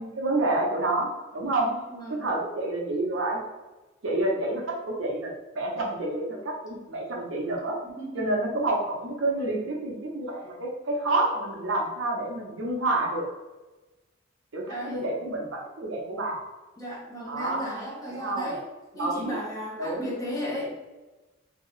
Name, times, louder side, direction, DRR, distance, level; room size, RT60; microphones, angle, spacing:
voice 1, 0.0-1.7 2.2-3.4 4.0-7.8 8.1-13.3 14.5-16.4 17.3-17.6 18.1-18.5 19.0-19.4 19.8-20.1, right 2 dB, 70° right, -1 dB, 0.7 m, -28 dB
voice 2, 1.6-2.3 7.8-8.3 14.7-15.0 16.8-18.6 18.9-20.7, equal, 20° left, -4 dB, 0.7 m, -35 dB
2.8 x 2.7 x 3.1 m, 1.1 s
head